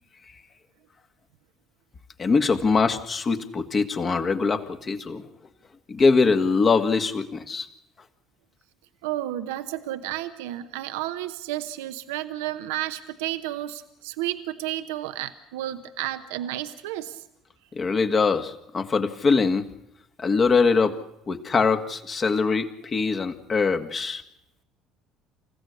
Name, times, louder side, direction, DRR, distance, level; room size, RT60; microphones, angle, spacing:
voice 1, 2.2-5.2 5.9-7.7 17.7-19.7 20.2-21.0 21.3-24.2, left 4 dB, 35° left, 7 dB, 2.0 m, -22 dB
voice 2, 9.0-17.2, right 14 dB, 75° right, 10 dB, 0.9 m, -32 dB
29.0 x 15.5 x 6.5 m, 0.79 s
hypercardioid pair, 60°, 0 cm